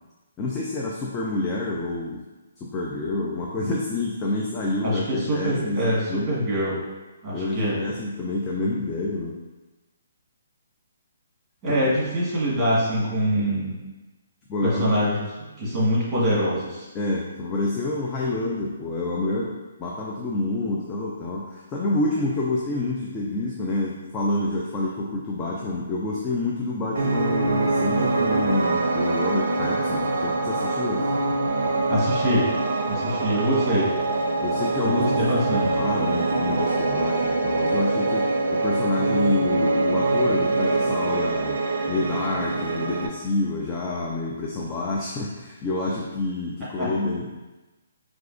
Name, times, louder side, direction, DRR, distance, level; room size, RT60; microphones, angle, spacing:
voice 1, 0.4-2.2 2.6-6.4 7.3-9.4 11.7-11.8 14.5-14.9 16.9-31.1 34.4-35.0 35.5-38.2 38.5-41.6 41.9-47.3, left 2 dB, 20° left, -4 dB, 0.4 m, -28 dB
voice 2, 4.8-6.8 7.2-7.8 11.6-13.8 14.6-16.9 31.9-32.5 32.9-33.9 34.8-35.8 46.8-46.9, equal, 15° right, -7 dB, 1.4 m, -24 dB
Piano, 27.0-43.1, right 2 dB, 70° right, 0.5 m, -24 dB
4.5 x 2.4 x 2.5 m, 1.1 s
hypercardioid pair, 145°, 0 cm